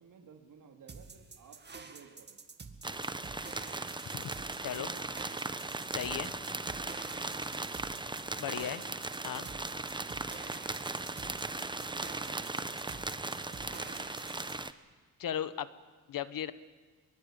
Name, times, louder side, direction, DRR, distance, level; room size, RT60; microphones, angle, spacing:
voice 1, 0.0-2.4 4.7-5.3 8.5-8.9 11.1-11.3 11.7-12.8 13.5-14.1, right 6 dB, 65° right, 2 dB, 2.7 m, -56 dB
sound 1, 0.9-14.6, right 4 dB, 30° right, 2.0 m, -49 dB
sound 2, 2.8-14.7, right 2 dB, 15° right, 0.9 m, -38 dB
voice 2, 5.9-6.3 8.4-8.8 9.2-9.5 15.2-15.7 16.1-16.5, left 10 dB, 80° left, 14 dB, 1.2 m, -36 dB
24.5 x 22.5 x 8.8 m, 1.4 s
cardioid pair, 115°, 33 cm